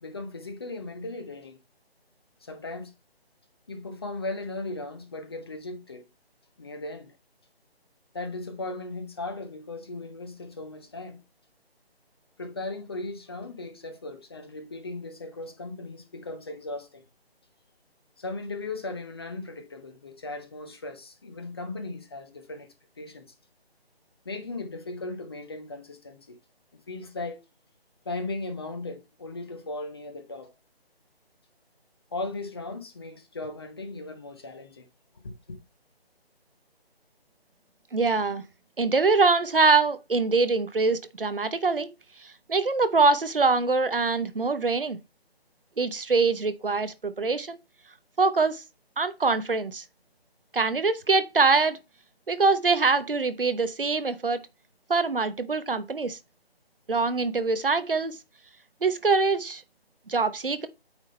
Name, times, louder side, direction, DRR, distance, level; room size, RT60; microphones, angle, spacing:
voice 1, 0.0-1.6 2.4-2.9 3.7-6.1 6.6-7.2 8.1-11.2 12.4-17.0 18.2-22.7 23.0-23.3 24.2-26.4 26.9-27.4 28.0-30.5 32.1-34.9, left 2 dB, 25° left, 0.9 m, -37 dB
voice 2, 37.9-38.4 38.8-41.9 42.2-45.0 45.8-47.6 48.2-48.6 49.0-49.8 50.5-51.8 52.3-54.4 54.9-56.2 56.9-58.2 58.8-59.6 60.1-60.7, right 4 dB, 60° right, 0.9 m, -24 dB
8.9 x 3.7 x 4.2 m
figure-of-eight pair, 155°, 31 cm